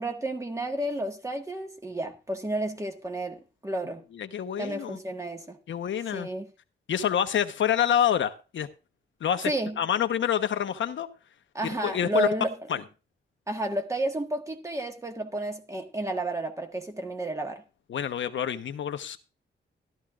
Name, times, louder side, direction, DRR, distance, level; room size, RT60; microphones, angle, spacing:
voice 1, 0.0-4.0 4.6-5.6 6.1-6.5 9.4-9.8 11.5-12.5 13.5-17.6, right 1 dB, 15° right, 1.6 m, -31 dB
voice 2, 4.1-5.0 5.7-6.3 6.9-8.7 9.2-9.5 9.8-11.1 11.6-12.3 12.7-12.8 17.9-19.2, left 9 dB, 80° left, 0.9 m, -27 dB
13.5 x 13.0 x 2.4 m
wide cardioid pair, 140°, 19 cm